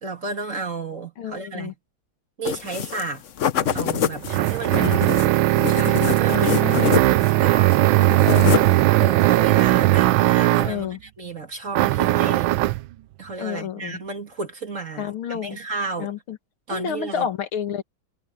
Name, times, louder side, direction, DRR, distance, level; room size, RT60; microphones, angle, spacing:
voice 1, 0.0-1.7 2.4-3.2 3.7-5.4 5.7-8.0 9.0-10.9 11.2-12.5 13.2-16.1 16.7-17.3, right 4 dB, 40° right, 3.0 m, -32 dB
voice 2, 1.2-1.7 4.7-5.0 6.3-7.0 8.3-8.7 10.6-11.0 13.4-14.0 15.0-15.6 16.0-16.4 16.7-17.8, left 8 dB, 90° left, 2.5 m, -30 dB
sound 1, 2.5-3.1 3.4-7.4 7.7-8.8, left 9 dB, 60° left, 0.8 m, -25 dB
sound 2, 3.6-10.8 11.7-12.9, right 17 dB, 80° right, 1.3 m, -18 dB
omnidirectional pair, 2.2 m